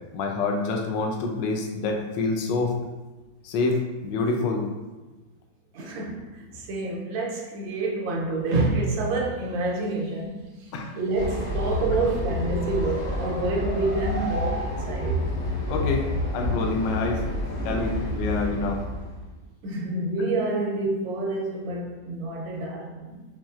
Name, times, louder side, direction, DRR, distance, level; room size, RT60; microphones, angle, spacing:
voice 1, 0.1-2.7 3.4-4.6 10.7-10.9 15.7-16.1 16.3-17.2 17.6-18.8, left 3 dB, 75° left, 1.2 m, -26 dB
voice 2, 5.7-15.3 19.6-23.3, right 2 dB, 75° right, 1.3 m, -28 dB
Train, 11.1-19.3, left 1 dB, 50° left, 1.1 m, -29 dB
4.3 x 3.0 x 2.4 m
omnidirectional pair, 2.2 m